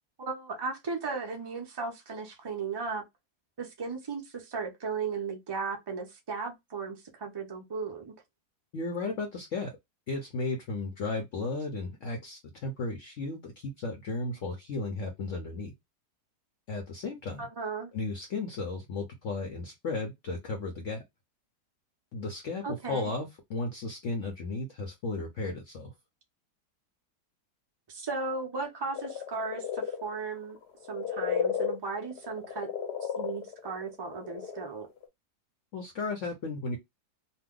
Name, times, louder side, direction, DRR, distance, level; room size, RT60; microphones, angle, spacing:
voice 1, 0.2-3.0 3.6-8.1 17.4-17.9 22.6-23.1 27.9-30.6 30.9-32.7 33.1-34.9, right 4 dB, 40° right, 0.3 m, -36 dB
voice 2, 8.7-9.7 10.1-15.7 16.7-17.5 17.9-21.0 22.1-25.9 35.7-36.8, left 3 dB, 60° left, 0.9 m, -34 dB
sound 1, 28.9-34.7 35.0-35.1, left 8 dB, 85° left, 1.4 m, -34 dB
2.8 x 2.2 x 3.6 m
omnidirectional pair, 1.7 m